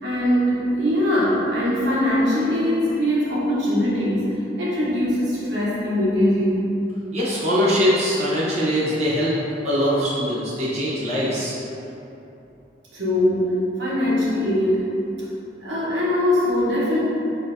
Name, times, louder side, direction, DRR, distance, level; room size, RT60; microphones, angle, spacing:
voice 1, 0.0-6.7 12.9-15.0 15.6-17.0, left 1 dB, 85° right, -8 dB, 1.1 m, -21 dB
voice 2, 7.1-9.3 9.6-11.5, equal, 40° right, -9 dB, 0.9 m, -22 dB
6.5 x 2.6 x 2.6 m, 3.0 s
head